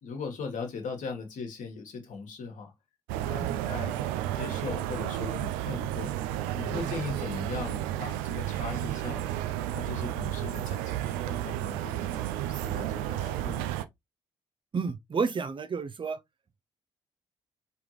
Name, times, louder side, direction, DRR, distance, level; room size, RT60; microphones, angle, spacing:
voice 1, 0.0-2.7 3.2-4.0 4.3-6.1 6.5-9.2 9.7-13.7, left 5 dB, 65° left, 1.5 m, -39 dB
sound 1, 3.1-13.8, right 13 dB, 85° right, 0.4 m, -32 dB
voice 2, 14.7-16.2, right 5 dB, 35° right, 0.6 m, -31 dB
3.6 x 3.4 x 3.1 m
hypercardioid pair, 50°, 14 cm